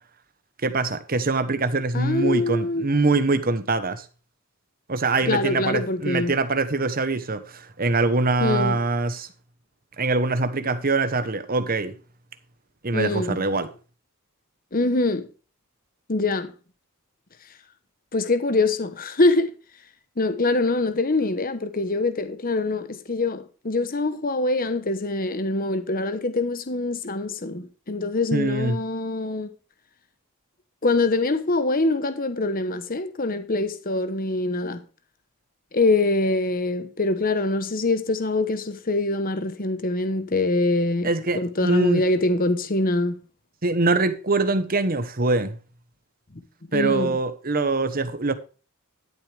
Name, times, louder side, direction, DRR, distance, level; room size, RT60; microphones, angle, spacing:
voice 1, 0.6-4.0 4.9-9.3 10.0-11.9 12.8-13.7 28.3-28.8 41.0-42.0 43.6-45.5 46.7-48.3, right 3 dB, 40° right, 1.1 m, -23 dB
voice 2, 1.9-2.8 5.3-6.3 8.4-8.8 12.9-13.4 14.7-15.3 16.1-16.5 18.1-19.5 20.2-29.5 30.8-34.8 35.7-41.1 41.3-43.1 46.7-47.1, left 2 dB, 40° left, 1.0 m, -24 dB
13.0 x 7.9 x 3.4 m
head